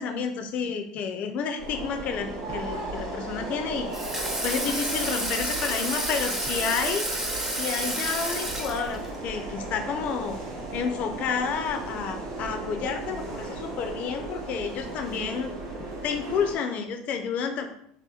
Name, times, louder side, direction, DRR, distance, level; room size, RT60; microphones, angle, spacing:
voice 1, 0.0-3.9 4.4-7.1 7.5-10.4 10.7-15.5 16.0-17.7, left 6 dB, 55° left, 6 dB, 0.4 m, -30 dB
sound 1, 1.6-16.6, right 2 dB, 85° right, 0.8 m, -36 dB
Water tap faucet / Sink (filling or washing), 3.9-9.2, right 1 dB, 10° right, 0.5 m, -30 dB
2.8 x 2.1 x 2.3 m, 0.70 s
supercardioid pair, 95°, 3 cm